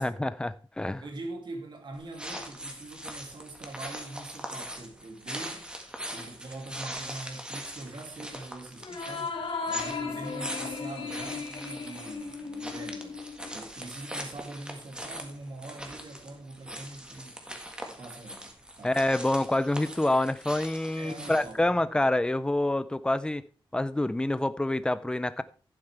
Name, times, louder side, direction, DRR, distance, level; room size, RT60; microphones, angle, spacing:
voice 1, 0.0-1.0 18.8-23.4 23.7-25.4, left 1 dB, 10° left, 0.5 m, -27 dB
voice 2, 1.0-5.7 6.1-9.3 9.7-13.2 13.5-17.6 17.8-19.0 20.9-22.1, right 2 dB, 60° right, 2.6 m, -43 dB
sound 1, 1.9-21.6, equal, 10° right, 1.7 m, -41 dB
sound 2, 8.8-13.6, left 5 dB, 80° left, 2.1 m, -36 dB
11.5 x 9.3 x 3.4 m
wide cardioid pair, 170°, 9 cm